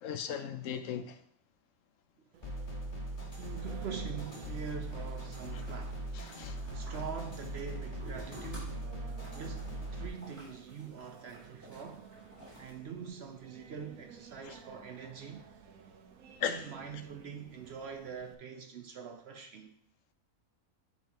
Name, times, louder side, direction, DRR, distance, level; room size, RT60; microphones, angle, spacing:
voice 1, 0.0-1.2 5.5-5.6 6.1-6.6 14.4-14.5 16.4-16.7, left 8 dB, 70° left, 0.9 m, -37 dB
Singing, 2.3-18.3, right 6 dB, 80° right, 1.2 m, -54 dB
sound 1, 2.4-10.1, right 1 dB, 35° left, 1.6 m, -40 dB
sound 2, 3.4-12.7, equal, 10° right, 2.9 m, -54 dB
voice 2, 3.4-6.1 6.7-8.9 9.3-12.1 12.6-15.5 16.4-19.7, right 6 dB, 60° right, 0.7 m, -44 dB
10.5 x 4.4 x 2.9 m
omnidirectional pair, 1.5 m